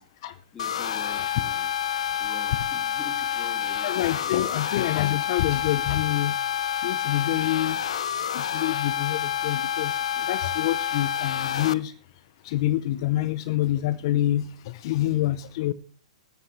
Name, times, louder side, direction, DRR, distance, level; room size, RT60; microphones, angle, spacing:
voice 1, 0.0-0.3 3.8-6.4 6.8-7.8 8.3-11.9 12.4-15.7, left 14 dB, 50° left, 0.7 m, -27 dB
voice 2, 0.5-1.7 2.2-4.4, left 5 dB, 15° left, 2.5 m, -44 dB
sound 1, 0.6-11.7, left 9 dB, 70° left, 0.9 m, -28 dB
20.5 x 11.5 x 3.3 m
hypercardioid pair, 130°, 3 cm